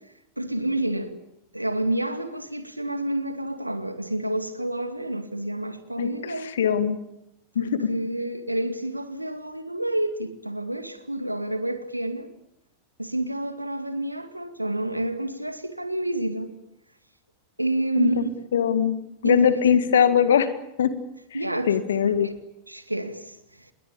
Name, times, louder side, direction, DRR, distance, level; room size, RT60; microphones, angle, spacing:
voice 1, 0.4-1.1 1.5-6.6 7.6-12.3 13.0-16.6 17.6-18.3 19.2-19.5 21.3-21.8 22.0-22.3 22.7-23.7, right 1 dB, 85° right, 2.2 m, -29 dB
voice 2, 6.6-7.0 7.6-7.9 18.0-18.2 18.5-19.0 19.2-20.5 20.8-20.9 21.7-22.3, left 8 dB, 65° left, 2.0 m, -20 dB
27.0 x 21.5 x 8.7 m
figure-of-eight pair, 90°, 0 cm